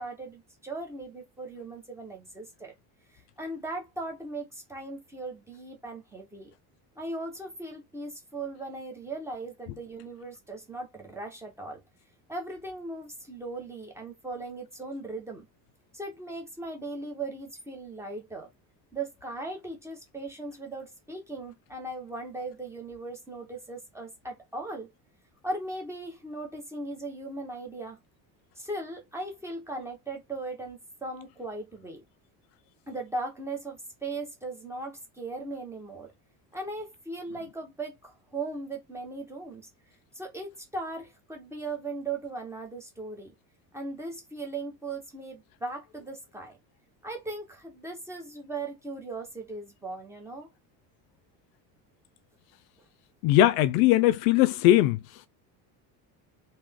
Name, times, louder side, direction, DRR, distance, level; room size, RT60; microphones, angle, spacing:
voice 1, 0.0-2.7 3.1-6.5 7.0-11.8 12.3-15.4 15.9-18.5 18.9-24.9 25.4-28.0 28.6-32.0 32.9-36.1 36.5-39.7 40.1-43.3 43.7-46.6 47.0-50.5, right 2 dB, 5° right, 0.7 m, -38 dB
voice 2, 53.2-55.0, left 14 dB, 65° left, 0.5 m, -20 dB
3.3 x 2.8 x 3.5 m
cardioid pair, 180°, 41 cm